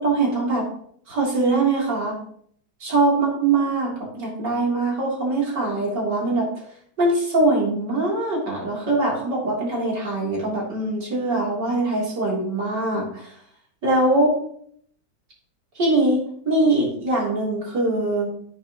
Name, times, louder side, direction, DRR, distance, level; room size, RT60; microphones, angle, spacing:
voice 1, 0.0-0.6 1.1-2.1 2.8-6.5 7.0-13.3 13.8-14.3 15.8-16.2 16.5-18.3, right 2 dB, 65° right, -4 dB, 3.9 m, -22 dB
10.5 x 9.6 x 3.0 m, 0.63 s
omnidirectional pair, 2.0 m